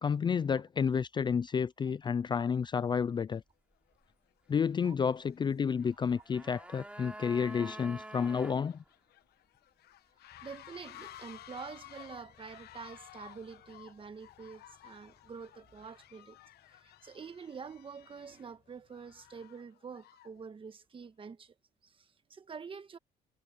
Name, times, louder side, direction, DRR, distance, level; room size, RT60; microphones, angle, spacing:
voice 1, 0.0-3.4 4.5-8.8, left 6 dB, 25° left, 0.4 m, -30 dB
sound 1, 3.1-3.2 3.9-4.1 4.5-20.4, left 14 dB, 70° left, 1.2 m, -56 dB
sound 2, 6.0-8.6 8.9-9.0, right 1 dB, 5° right, 3.6 m, -47 dB
sound 3, 10.3-19.5, left 7 dB, 45° left, 7.3 m, -68 dB
voice 2, 10.4-16.4 16.7-21.5 21.8-23.0, right 5 dB, 30° right, 1.5 m, -47 dB
cardioid pair, 110°, 17 cm